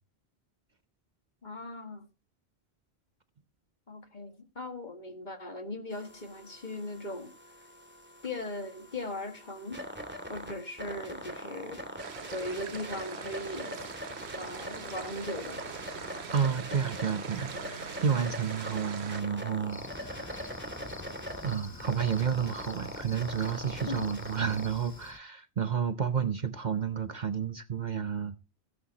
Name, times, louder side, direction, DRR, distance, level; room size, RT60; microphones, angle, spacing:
voice 1, 1.4-2.0 3.9-7.3 8.2-9.9 10.3-11.9 12.3-13.9 14.4-15.6 23.9-24.2, left 1 dB, 45° left, 2.0 m, -39 dB
sound 1, 5.9-25.1, equal, 10° right, 2.4 m, -42 dB
sound 2, 12.0-19.2, right 8 dB, 80° right, 1.1 m, -44 dB
voice 2, 16.3-20.4 21.4-28.4, right 7 dB, 45° right, 0.8 m, -31 dB
Cricket, 19.7-25.2, left 4 dB, 25° left, 0.4 m, -46 dB
17.0 x 8.7 x 2.8 m
omnidirectional pair, 1.1 m